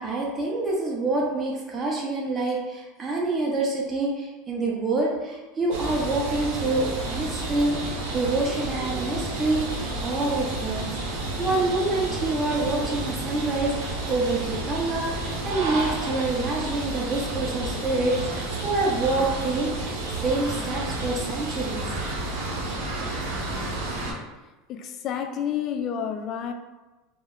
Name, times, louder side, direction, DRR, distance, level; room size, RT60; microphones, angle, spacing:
voice 1, 0.0-20.0 20.2-21.9, right 2 dB, 25° right, -3 dB, 0.7 m, -27 dB
sound 1, 5.7-24.1, right 2 dB, 65° right, 0.8 m, -31 dB
voice 2, 24.7-26.5, left 8 dB, 50° left, 6 dB, 0.3 m, -29 dB
2.2 x 2.1 x 3.5 m, 1.1 s
hypercardioid pair, 90°, 0 cm